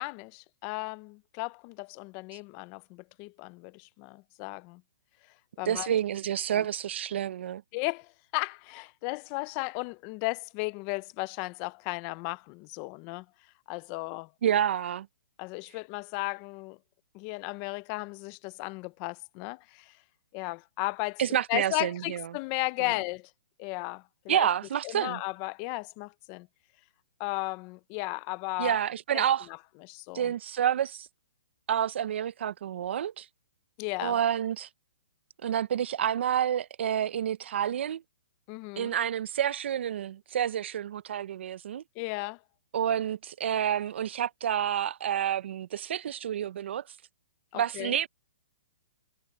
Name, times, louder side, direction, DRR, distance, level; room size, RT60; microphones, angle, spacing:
voice 1, 0.0-4.8 5.6-6.0 6.5-6.6 7.7-13.3 13.7-14.3 15.4-16.8 17.1-20.0 20.3-21.2 21.5-23.3 23.6-24.5 24.8-26.5 27.2-28.8 29.1-29.6 29.8-30.3 33.8-34.2 38.5-38.9 42.0-42.4 47.5-47.9, left 25 dB, 20° left, 0.4 m, -35 dB
voice 2, 5.7-7.6 14.4-15.1 21.2-22.3 24.3-25.2 28.6-29.5 30.1-31.1 31.7-33.3 34.0-34.7 35.4-38.0 38.8-41.8 42.7-46.8 47.5-48.1, right 10 dB, 55° right, 0.5 m, -29 dB
hypercardioid pair, 165°, 8 cm